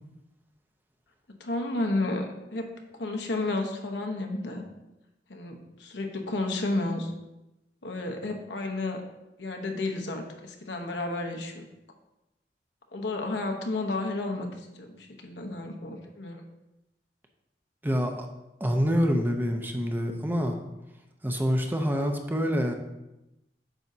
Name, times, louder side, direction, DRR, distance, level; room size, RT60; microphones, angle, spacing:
voice 1, 1.4-4.6 5.3-7.1 7.8-9.0 9.4-11.7 12.9-14.5 14.7-16.4, left 2 dB, 85° left, 3 dB, 1.0 m, -32 dB
voice 2, 17.8-18.3 18.6-20.6 21.2-22.7, equal, 10° right, 4 dB, 0.6 m, -26 dB
8.9 x 6.3 x 2.8 m, 0.94 s
head